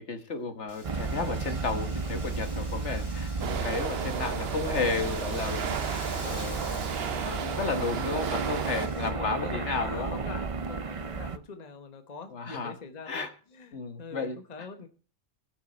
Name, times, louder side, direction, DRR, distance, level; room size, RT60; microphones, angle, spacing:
voice 1, 0.0-10.1 12.3-12.8 13.1-13.3 13.7-14.7, left 4 dB, 60° left, 8 dB, 1.7 m, -33 dB
Wind, 0.7-9.1, left 1 dB, 15° left, 2.8 m, -47 dB
sound 1, 0.8-11.4, right 4 dB, 35° right, 0.5 m, -33 dB
sound 2, 3.4-8.9, right 8 dB, 55° right, 1.0 m, -34 dB
voice 2, 9.0-13.2 13.5-14.9, left 5 dB, 35° left, 7 dB, 1.1 m, -44 dB
18.5 x 6.3 x 4.3 m, 0.40 s
omnidirectional pair, 1.3 m